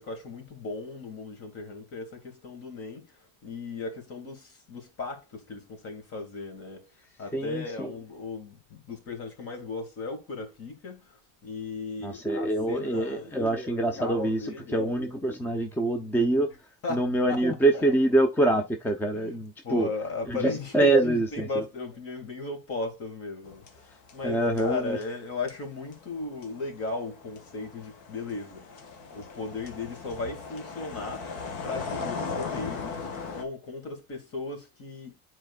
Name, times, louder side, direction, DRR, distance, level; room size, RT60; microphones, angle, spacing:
voice 1, 0.0-6.9 7.2-13.5 13.9-15.0 16.8-18.0 19.1-31.3 31.6-32.9 33.3-35.1, left 3 dB, 40° left, 2.2 m, -37 dB
voice 2, 7.3-7.9 12.0-16.5 16.9-19.9 20.3-21.6 24.2-25.0, right 2 dB, 5° left, 0.6 m, -25 dB
sound 1, 23.4-24.3 24.6-33.4, left 4 dB, 85° left, 1.7 m, -38 dB
10.0 x 4.4 x 2.3 m
cardioid pair, 145°, 35 cm